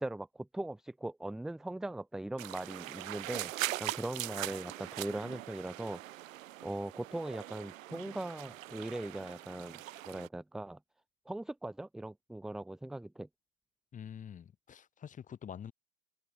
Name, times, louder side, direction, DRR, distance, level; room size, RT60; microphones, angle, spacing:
voice 1, 0.0-3.5 3.8-6.0 6.6-10.8 11.3-13.3, right 1 dB, ahead, 0.7 m, -40 dB
sound 1, 2.4-10.3, right 15 dB, 60° right, 2.1 m, -41 dB
voice 2, 13.9-15.7, left 8 dB, 15° left, 5.5 m, -46 dB
supercardioid pair, 155°, 45 cm